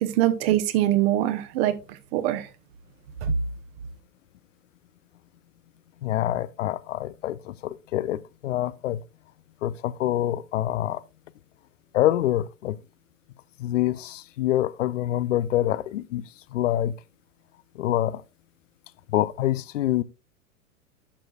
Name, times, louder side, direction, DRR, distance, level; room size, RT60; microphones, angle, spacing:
voice 1, 0.0-1.7 2.1-2.5, right 13 dB, 45° right, 1.1 m, -23 dB
voice 2, 6.0-9.0 9.6-11.0 11.9-12.8 13.6-16.2 16.5-16.9 17.8-18.2 19.1-20.0, left 13 dB, 60° left, 0.6 m, -26 dB
11.5 x 6.3 x 2.4 m
figure-of-eight pair, 95°, 42 cm